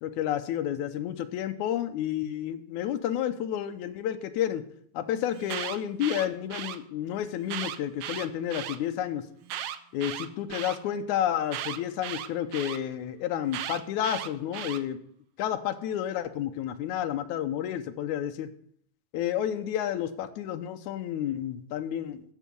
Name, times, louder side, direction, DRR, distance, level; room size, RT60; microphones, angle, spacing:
voice 1, 0.0-4.6 4.9-9.3 9.9-15.0 15.4-18.5 19.1-22.2, left 10 dB, 75° left, 9 dB, 2.0 m, -30 dB
Alarm, 5.3-6.8 7.4-8.8 9.4-10.8 11.5-12.8 13.5-14.8, right 11 dB, 75° right, 1.7 m, -36 dB
13.0 x 7.4 x 5.3 m, 0.64 s
omnidirectional pair, 3.8 m